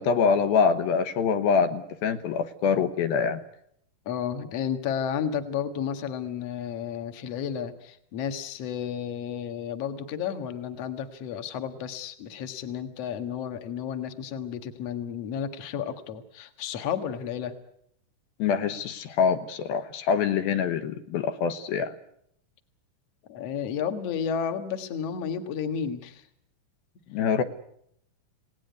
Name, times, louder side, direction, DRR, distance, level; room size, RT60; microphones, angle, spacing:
voice 1, 0.0-3.4 18.4-21.9 27.1-27.4, left 6 dB, 80° left, 9 dB, 3.0 m, -25 dB
voice 2, 4.1-17.5 23.3-26.2, left 8 dB, 50° left, 8 dB, 2.3 m, -32 dB
29.0 x 18.0 x 9.5 m, 0.73 s
omnidirectional pair, 4.3 m